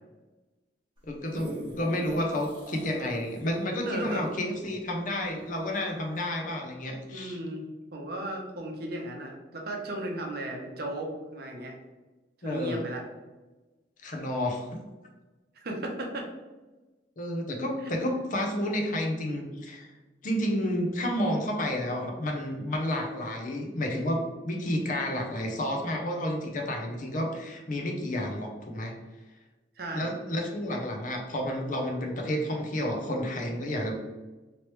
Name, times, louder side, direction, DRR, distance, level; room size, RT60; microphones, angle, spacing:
voice 1, 1.0-7.4 12.4-12.8 14.0-14.7 17.2-19.9 20.2-28.9 29.9-33.9, left 1 dB, 50° left, 2 dB, 0.6 m, -30 dB
sound 1, 1.0-5.6 6.2-6.3, right 1 dB, 25° right, 1.0 m, -43 dB
voice 2, 3.9-4.2 7.1-7.6 7.9-11.7 12.4-13.0 15.6-16.3 17.8-17.9 29.8-30.1, right 1 dB, 60° right, 1 dB, 0.7 m, -35 dB
3.1 x 3.0 x 3.0 m, 1.2 s
head